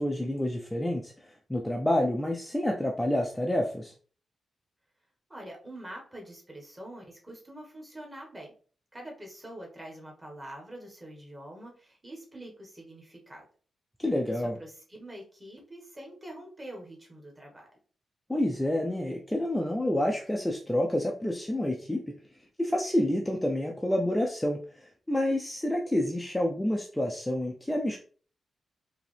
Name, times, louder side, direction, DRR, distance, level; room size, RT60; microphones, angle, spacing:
voice 1, 0.0-3.9 14.0-14.6 18.3-22.1 22.6-28.0, left 1 dB, 5° left, 0 dB, 0.5 m, -28 dB
voice 2, 5.3-8.5 8.9-13.4 14.3-17.7, right 1 dB, 20° right, 0 dB, 1.4 m, -45 dB
4.9 x 2.8 x 3.3 m, 0.42 s
wide cardioid pair, 155°, 0 cm